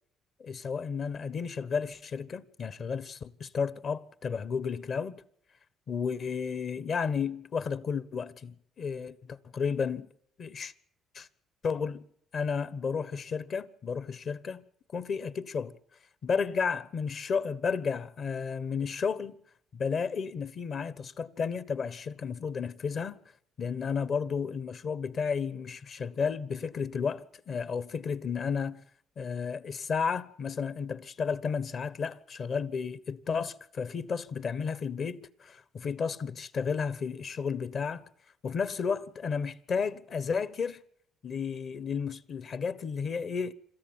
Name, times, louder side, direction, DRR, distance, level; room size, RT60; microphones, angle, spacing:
voice 1, 0.4-5.2 5.9-10.1 10.4-10.7 11.1-11.3 11.6-12.1 12.3-14.6 14.9-15.7 16.2-19.4 19.7-23.2 23.6-28.8 29.2-38.1 38.4-40.8 41.2-43.5, left 6 dB, 50° left, 1.2 m, -32 dB
26.0 x 14.0 x 9.0 m
supercardioid pair, 70°, 0 cm